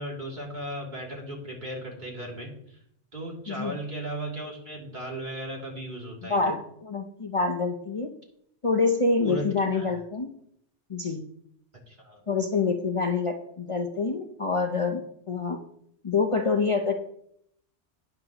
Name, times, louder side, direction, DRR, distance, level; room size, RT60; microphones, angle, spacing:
voice 1, 0.0-2.8 3.1-6.5 9.2-10.0 11.9-12.2, right 1 dB, 40° right, -3 dB, 3.0 m, -36 dB
voice 2, 6.3-8.1 8.6-10.3 10.9-11.3 12.3-15.6 16.0-16.9, left 4 dB, 30° left, 3 dB, 0.7 m, -26 dB
14.5 x 9.6 x 3.0 m, 0.71 s
omnidirectional pair, 1.2 m